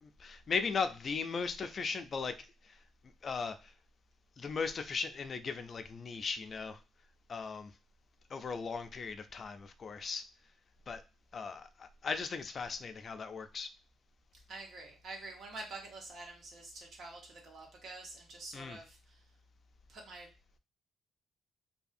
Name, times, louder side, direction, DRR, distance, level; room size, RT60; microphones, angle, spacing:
voice 1, 0.0-2.8 3.2-3.7 4.4-6.8 7.3-7.7 8.3-10.2 10.9-11.0 11.3-13.7 18.5-18.8, left 5 dB, 45° left, 9 dB, 0.3 m, -37 dB
voice 2, 14.5-19.2 19.9-20.3, right 2 dB, 65° right, 1 dB, 1.0 m, -47 dB
2.7 x 2.4 x 2.5 m, 0.30 s
cardioid pair, 90°, 0 cm